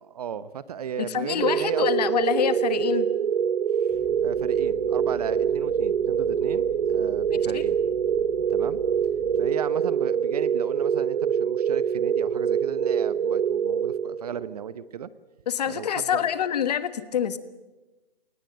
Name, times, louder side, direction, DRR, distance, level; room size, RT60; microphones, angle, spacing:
voice 1, 0.0-1.9 3.8-7.8 8.5-8.8 9.4-15.1 15.7-16.3, right 8 dB, 40° right, 16 dB, 1.0 m, -35 dB
voice 2, 1.1-3.1 7.3-7.6 15.5-17.4, left 9 dB, 45° left, 14 dB, 1.4 m, -26 dB
sound 1, 1.4-14.6, right 8 dB, 65° right, 1.1 m, -25 dB
sound 2, 3.9-9.5, left 4 dB, ahead, 5.2 m, -45 dB
22.0 x 19.0 x 9.1 m, 1.1 s
hypercardioid pair, 155°, 29 cm